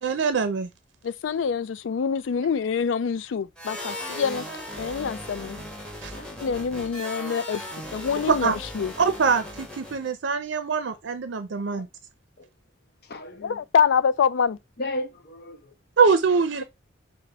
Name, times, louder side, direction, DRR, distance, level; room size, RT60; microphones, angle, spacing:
voice 1, 0.0-0.7 6.0-6.1 8.3-8.6 9.0-11.9 16.0-16.6, right 5 dB, 80° right, 0.5 m, -23 dB
voice 2, 1.0-4.5 4.8-5.6 6.4-7.7 7.9-8.9 13.4-14.6, left 6 dB, 90° left, 0.4 m, -25 dB
sound 1, 3.6-10.1, left 1 dB, 5° left, 1.1 m, -37 dB
voice 3, 6.1-6.6 12.4-12.5 13.1-13.6 14.8-15.6, left 1 dB, 55° left, 0.8 m, -35 dB
5.3 x 2.1 x 3.9 m
head